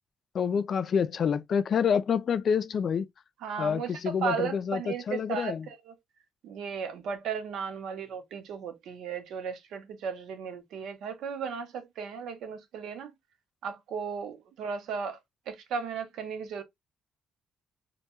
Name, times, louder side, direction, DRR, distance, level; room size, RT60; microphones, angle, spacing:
voice 1, 0.3-3.1 3.6-5.7, left 7 dB, 55° left, 0.3 m, -27 dB
voice 2, 3.4-5.9 6.4-13.1 13.6-15.2 15.5-16.6, right 6 dB, 80° right, 0.6 m, -35 dB
2.2 x 2.2 x 2.8 m
cardioid pair, 90°, 0 cm